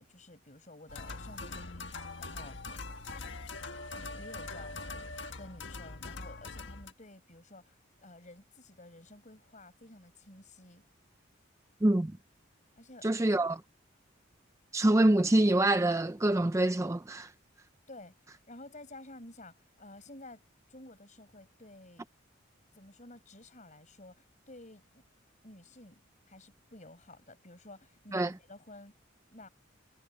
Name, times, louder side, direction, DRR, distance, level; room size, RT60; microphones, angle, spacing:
voice 1, 0.0-1.9 2.2-2.6 3.9-5.1 5.4-10.8 12.8-13.1 17.9-20.4 20.7-22.1 22.7-25.0 25.4-26.0 26.3-28.9 29.3-29.5, left 2 dB, 40° left, 6.8 m, -52 dB
sound 1, 0.9-6.9, left 3 dB, 65° left, 1.6 m, -42 dB
voice 2, 11.8-12.1 13.0-13.6 14.7-17.3 28.1-28.3, right 1 dB, 15° right, 0.4 m, -25 dB
head